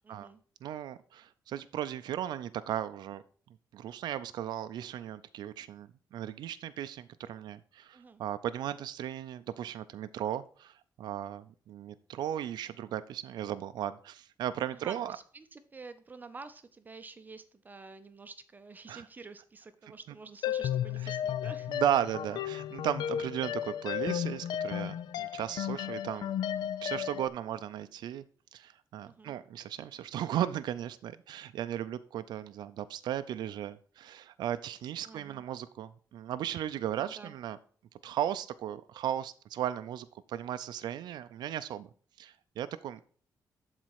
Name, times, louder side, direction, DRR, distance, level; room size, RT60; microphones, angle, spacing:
voice 1, 0.0-0.4 7.9-8.2 14.7-21.8 29.0-29.4 35.0-35.4 37.0-37.3, right 4 dB, 25° right, 10 dB, 0.5 m, -49 dB
voice 2, 0.6-3.2 3.7-15.2 18.9-19.1 21.7-26.3 26.8-28.2 28.5-37.6 38.0-41.9 42.2-43.0, right 11 dB, 90° right, 11 dB, 0.4 m, -36 dB
sound 1, 20.4-27.3, left 10 dB, 80° left, 0.4 m, -34 dB
11.5 x 4.1 x 4.7 m, 0.43 s
wide cardioid pair, 150°, 7 cm